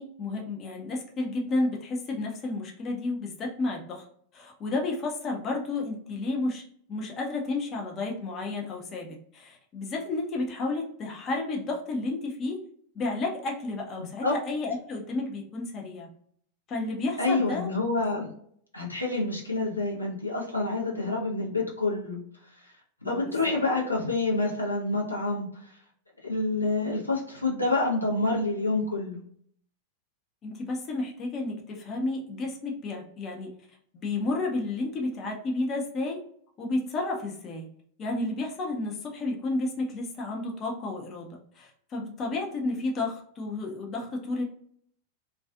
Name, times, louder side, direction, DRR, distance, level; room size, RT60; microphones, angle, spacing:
voice 1, 0.0-4.1 4.3-6.6 6.9-12.6 12.9-16.1 16.7-17.7 23.0-23.6 30.4-33.5 33.9-36.2 36.6-37.7 38.0-44.4, left 2 dB, 30° left, 0 dB, 0.5 m, -31 dB
voice 2, 17.2-18.3 18.7-22.2 23.0-25.7 26.2-29.2, left 2 dB, 85° left, -3 dB, 0.7 m, -27 dB
2.3 x 2.3 x 2.3 m, 0.64 s
figure-of-eight pair, 90°, 0 cm